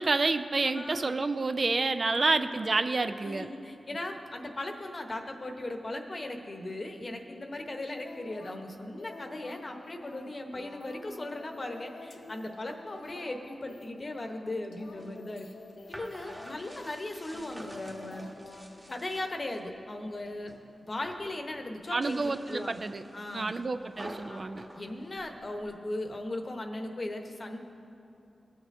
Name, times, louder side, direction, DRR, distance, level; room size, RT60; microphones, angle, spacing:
voice 1, 0.0-3.5 21.9-23.0 23.3-24.7, right 3 dB, 55° right, 10 dB, 0.4 m, -29 dB
voice 2, 0.6-1.2 2.1-2.5 3.2-15.5 15.9-18.3 18.9-20.5 20.8-22.8 23.1-23.5 24.3-24.4 24.8-27.6, left 1 dB, 45° left, 4 dB, 0.9 m, -38 dB
sound 1, 7.9-19.0, left 3 dB, 85° left, 0.5 m, -49 dB
sound 2, 14.8-19.7 20.1-20.6 20.9-21.4 21.9-25.8, equal, 15° right, 1.1 m, -49 dB
18.5 x 6.5 x 2.6 m, 2.8 s
cardioid pair, 55°, 0 cm